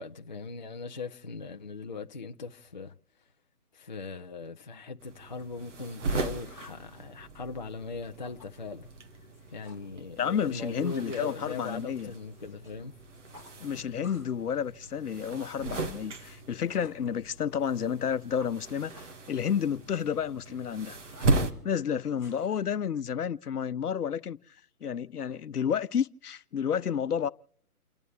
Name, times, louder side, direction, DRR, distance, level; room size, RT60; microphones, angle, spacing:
voice 1, 0.0-2.9 3.7-8.9 9.5-12.9, left 4 dB, 30° left, 0.5 m, -40 dB
sound 1, 4.7-4.8 5.2-6.8 7.2-8.5 8.8-9.1 9.3-9.9 10.2-12.8 13.0-14.4 14.7-17.1 17.6-22.6, left 3 dB, 5° right, 2.6 m, -57 dB
sound 2, 5.0-21.5, right 3 dB, 50° right, 1.9 m, -37 dB
voice 2, 10.2-12.1 13.6-21.0 21.6-24.4 24.8-27.3, left 8 dB, 80° left, 0.8 m, -31 dB
29.5 x 12.0 x 3.3 m
hypercardioid pair, 155°, 45 cm